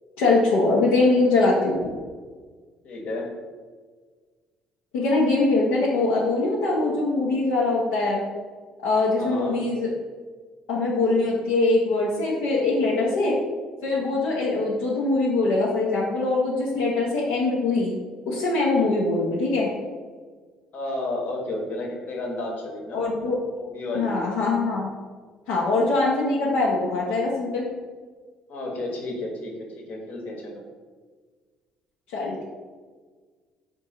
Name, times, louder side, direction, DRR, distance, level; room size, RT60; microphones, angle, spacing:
voice 1, 0.2-1.9 4.9-8.2 8.8-9.9 10.7-13.3 13.8-17.9 18.3-19.7 22.9-23.4 23.9-24.9 25.5-27.7 32.1-32.5, left 3 dB, 85° left, -5 dB, 0.7 m, -22 dB
voice 2, 2.8-3.3 9.2-9.6 20.7-23.0 23.5-24.2 28.5-30.5, left 2 dB, 60° left, 0 dB, 1.0 m, -32 dB
3.7 x 2.7 x 4.1 m, 1.5 s
hypercardioid pair, 65°, 3 cm